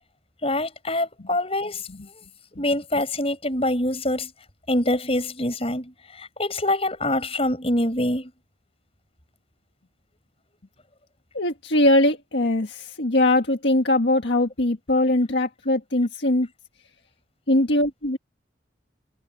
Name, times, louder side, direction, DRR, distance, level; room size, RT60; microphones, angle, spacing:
voice 1, 0.4-1.8 2.6-4.3 4.7-8.3, left 1 dB, 30° left, 8.0 m, -25 dB
voice 2, 11.3-16.5 17.5-18.2, left 1 dB, 65° left, 1.6 m, -21 dB
head